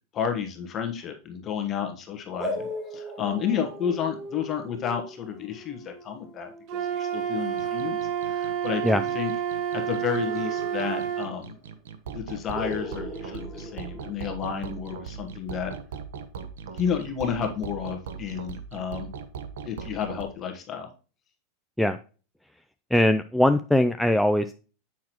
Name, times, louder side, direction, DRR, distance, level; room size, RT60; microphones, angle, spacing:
voice 1, 0.1-8.0 8.2-9.3 9.7-11.5 12.1-15.7 16.7-19.1 19.6-20.9, left 8 dB, 30° left, 4 dB, 1.2 m, -31 dB
sound 1, 2.4-7.8 10.1-11.5 11.8-11.9 12.5-14.7, equal, 15° right, 2.6 m, -39 dB
Wind instrument woodwind instrument, 6.7-11.3, right 9 dB, 50° right, 1.1 m, -29 dB
sound 2, 7.6-20.2, right 6 dB, 85° right, 0.9 m, -39 dB
voice 2, 22.9-24.5, left 1 dB, ahead, 8 dB, 0.3 m, -21 dB
7.3 x 5.9 x 3.0 m, 0.36 s
supercardioid pair, 125°, 0 cm